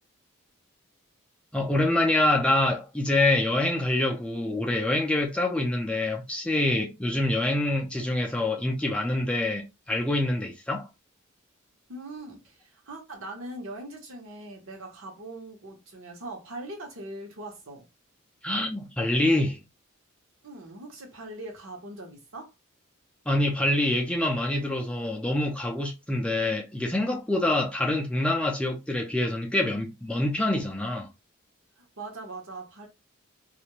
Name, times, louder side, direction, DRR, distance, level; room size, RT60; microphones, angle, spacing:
voice 1, 1.5-10.9 18.4-19.6 23.3-31.1, left 1 dB, 5° left, 0.4 m, -26 dB
voice 2, 11.9-17.9 20.4-22.5 31.8-32.9, right 2 dB, 65° right, 0.9 m, -41 dB
2.4 x 2.1 x 3.0 m
head